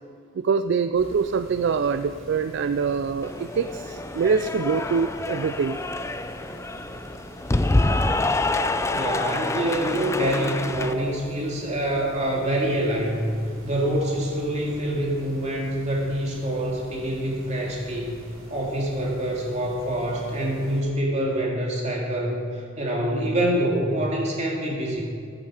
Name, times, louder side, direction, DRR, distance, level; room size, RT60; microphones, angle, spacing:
voice 1, 0.4-5.8, right 5 dB, 60° right, 10 dB, 0.3 m, -24 dB
sound 1, 0.9-20.8, right 1 dB, 90° right, 3.2 m, -45 dB
Cheering / Applause, 3.2-10.9, left 2 dB, 15° left, 0.4 m, -27 dB
voice 2, 8.9-13.3 13.6-18.2 18.5-25.0, right 1 dB, 35° right, -2 dB, 2.6 m, -26 dB
14.5 x 11.0 x 4.9 m, 2.3 s
head